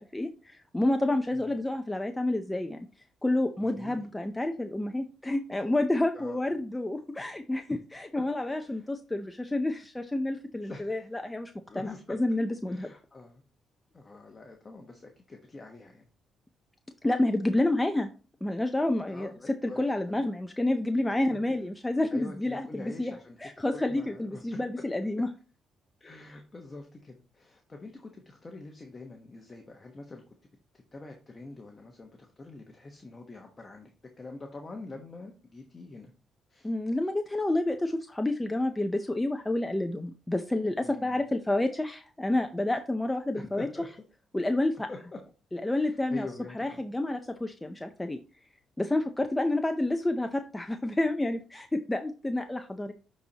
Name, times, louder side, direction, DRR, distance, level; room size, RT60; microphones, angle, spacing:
voice 1, 0.0-2.9 3.2-12.9 17.0-18.1 18.4-25.3 36.6-43.7 44.3-44.9 45.5-46.3 46.5-48.2 48.8-52.9, left 1 dB, 10° left, 6 dB, 0.6 m, -29 dB
voice 2, 3.6-4.1 6.1-6.6 8.4-8.9 10.6-11.1 11.7-12.2 12.7-13.4 13.9-16.1 19.1-19.9 20.1-20.3 22.1-23.4 23.7-24.6 26.0-30.2 30.9-33.9 34.2-36.1 36.5-36.7 40.8-41.2 43.3-43.9 44.9-45.2 45.6-46.8, left 3 dB, 30° left, 3 dB, 1.1 m, -45 dB
10.0 x 4.3 x 2.9 m, 0.35 s
cardioid pair, 90°, 0 cm